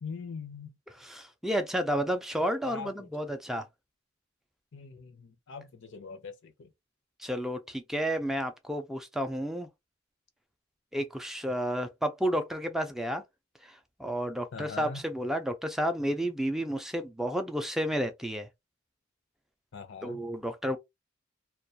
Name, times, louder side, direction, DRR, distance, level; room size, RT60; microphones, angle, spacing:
voice 1, 0.0-0.8 2.6-3.1 4.7-6.7 14.5-15.0 19.7-20.2, left 5 dB, 65° left, 0.5 m, -42 dB
voice 2, 0.9-3.7 7.2-9.7 10.9-13.2 13.6-18.5 20.0-20.8, equal, ahead, 0.3 m, -31 dB
2.3 x 2.2 x 2.7 m
head